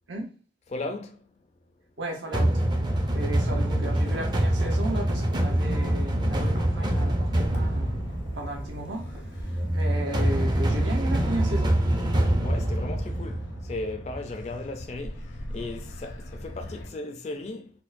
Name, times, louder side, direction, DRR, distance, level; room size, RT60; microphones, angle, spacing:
voice 1, 0.7-1.2 12.4-17.7, left 2 dB, 35° left, 0.3 m, -36 dB
voice 2, 2.0-2.6 3.1-8.0 8.3-11.8, right 1 dB, 80° right, 0.8 m, -35 dB
sound 1, 2.3-14.2, right 1 dB, 25° right, 0.4 m, -25 dB
Motor vehicle (road), 2.9-16.9, left 1 dB, 75° left, 0.7 m, -43 dB
sound 2, 4.1-4.3 5.1-5.4 6.4-6.7 7.5-7.8 9.0-9.3 9.9-10.1 10.7-11.0 11.4-11.7, equal, 40° right, 0.8 m, -38 dB
4.3 x 2.1 x 2.5 m
head